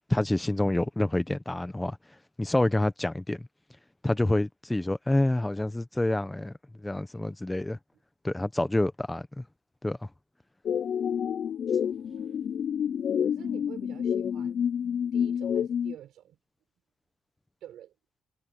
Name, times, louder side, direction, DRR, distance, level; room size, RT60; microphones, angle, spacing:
voice 1, 0.0-2.0 2.4-3.5 4.0-6.5 6.8-7.8 8.2-9.4 9.8-10.0, left 1 dB, 10° left, 1.2 m, -27 dB
sound 1, 10.7-16.0, left 8 dB, 60° left, 0.6 m, -29 dB
voice 2, 11.5-12.4 13.2-14.6 15.1-16.4 17.6-17.9, right 11 dB, 80° right, 5.0 m, -49 dB
cardioid pair, 90°, 0 cm